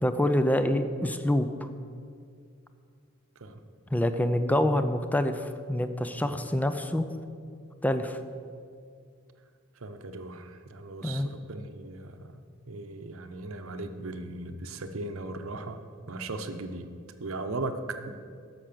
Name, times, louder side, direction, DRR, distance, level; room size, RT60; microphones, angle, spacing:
voice 1, 0.0-1.7 3.9-7.0 7.8-8.2 11.0-11.3, left 1 dB, 5° left, 9 dB, 0.5 m, -26 dB
voice 2, 9.8-12.4 12.7-15.8 16.1-16.9 17.2-18.1, right 2 dB, 70° right, 8 dB, 0.8 m, -37 dB
13.5 x 6.2 x 6.7 m, 2.3 s
head